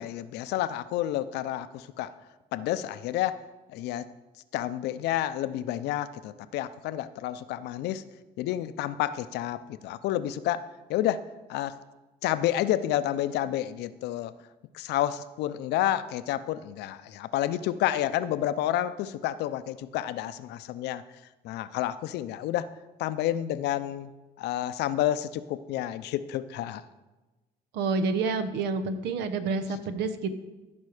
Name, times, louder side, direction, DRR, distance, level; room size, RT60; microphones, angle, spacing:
voice 1, 0.0-2.1 2.5-3.4 3.7-4.1 4.5-8.0 8.4-11.8 12.2-14.4 14.7-21.0 21.4-22.7 23.0-24.1 24.4-26.8, left 12 dB, 80° left, 14 dB, 0.6 m, -30 dB
voice 2, 27.7-30.3, right 4 dB, 85° right, 10 dB, 0.9 m, -28 dB
15.0 x 5.4 x 4.9 m, 1.1 s
cardioid pair, 110°, 17 cm